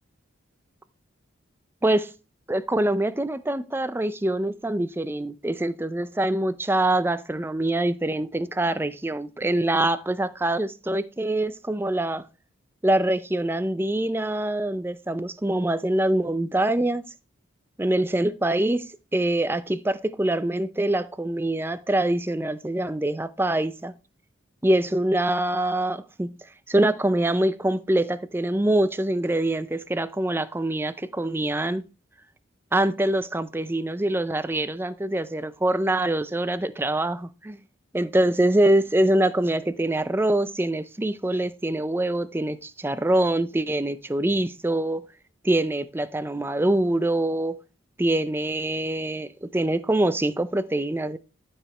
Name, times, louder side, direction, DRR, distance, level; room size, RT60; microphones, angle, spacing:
voice 1, 1.8-2.1 2.5-12.3 12.8-17.0 17.8-23.9 24.6-26.3 26.7-31.8 32.7-37.6 37.9-45.1 45.4-47.6 48.0-51.2, right 1 dB, 10° right, 0.4 m, -24 dB
12.0 x 4.9 x 4.3 m
head